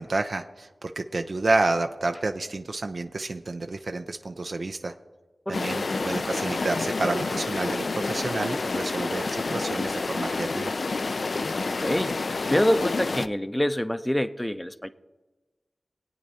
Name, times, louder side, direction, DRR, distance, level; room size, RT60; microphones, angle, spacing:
voice 1, 0.0-4.9 5.5-10.7, right 2 dB, 60° right, 6 dB, 0.5 m, -29 dB
sound 1, 5.5-13.3, left 3 dB, 65° left, 0.4 m, -29 dB
voice 2, 5.5-6.1 11.6-12.2 12.5-14.9, equal, 10° left, 12 dB, 0.5 m, -26 dB
21.5 x 8.7 x 2.8 m, 1.2 s
wide cardioid pair, 55°, 0 cm